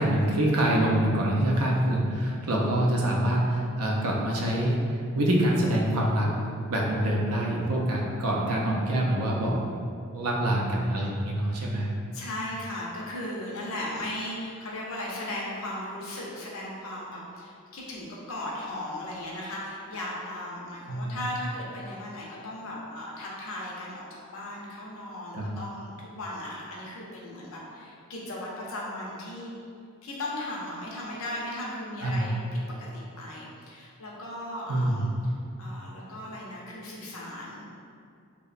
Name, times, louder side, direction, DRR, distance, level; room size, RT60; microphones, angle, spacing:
voice 1, 0.0-6.3 6.7-9.6 10.1-11.9 20.9-21.2 25.3-25.5 32.0-32.3 34.7-35.1, right 1 dB, 75° right, -2 dB, 0.4 m, -25 dB
voice 2, 12.1-29.5 30.0-35.1 35.6-37.6, left 1 dB, 65° left, -4 dB, 0.5 m, -37 dB
2.7 x 2.1 x 2.4 m, 2.4 s
head